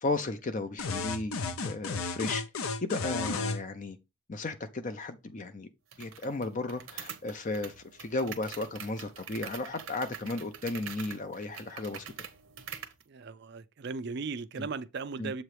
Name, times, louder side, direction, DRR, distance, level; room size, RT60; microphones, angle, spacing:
voice 1, 0.0-2.4 2.8-4.0 4.3-5.7 6.0-12.3 15.2-15.3, left 2 dB, 35° left, 0.5 m, -34 dB
sound 1, 0.8-3.6, left 4 dB, 80° left, 0.7 m, -33 dB
sound 2, 5.9-13.0, right 8 dB, 70° right, 1.0 m, -45 dB
voice 2, 13.1-15.4, right 4 dB, 50° right, 0.4 m, -37 dB
7.6 x 3.1 x 4.8 m
head